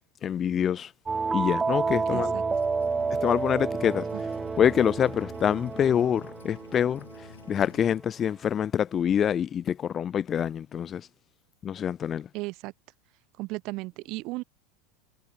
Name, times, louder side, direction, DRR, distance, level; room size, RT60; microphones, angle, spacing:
voice 1, 0.2-0.9 1.3-2.3 3.2-4.1 4.6-11.1 11.6-12.3, left 9 dB, 30° left, 0.7 m, -26 dB
sound 1, 1.1-7.5, right 4 dB, 15° right, 2.2 m, -30 dB
voice 2, 2.1-2.4 4.1-4.2 12.3-12.7 13.4-14.4, right 22 dB, 50° right, 2.5 m, -35 dB
sound 2, 2.5-8.0, left 8 dB, 75° left, 5.9 m, -50 dB
figure-of-eight pair, 80°, 0 cm